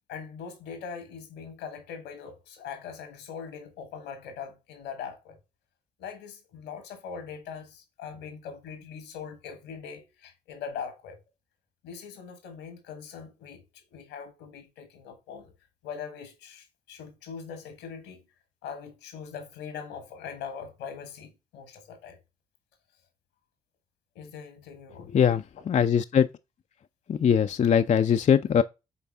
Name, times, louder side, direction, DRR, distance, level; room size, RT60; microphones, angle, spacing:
voice 1, 0.1-5.4 6.0-11.2 11.8-15.5 15.8-18.2 18.6-22.2 24.1-25.4, left 6 dB, 80° left, 1.5 m, -41 dB
voice 2, 25.1-26.3 27.1-28.6, left 8 dB, 40° left, 0.5 m, -21 dB
7.1 x 3.9 x 3.5 m
hypercardioid pair, 40°, 19 cm